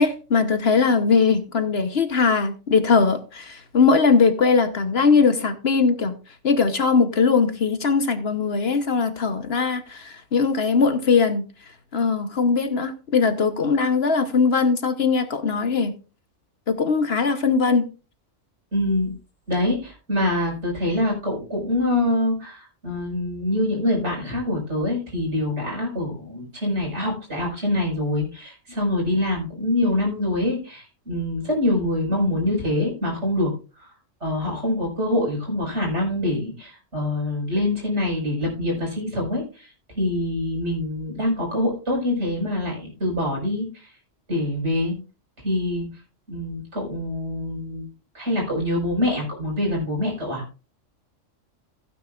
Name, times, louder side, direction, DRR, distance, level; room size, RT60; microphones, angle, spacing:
voice 1, 0.0-6.1 6.4-11.4 11.9-15.9 16.7-17.9, left 5 dB, 55° left, 1.2 m, -20 dB
voice 2, 18.7-19.1 19.5-33.5 34.2-39.7 40.0-43.9 44.3-45.0 45.4-45.9 46.3-47.9 48.1-50.4, left 1 dB, 60° right, 5.7 m, -25 dB
15.5 x 9.4 x 2.5 m
omnidirectional pair, 1.3 m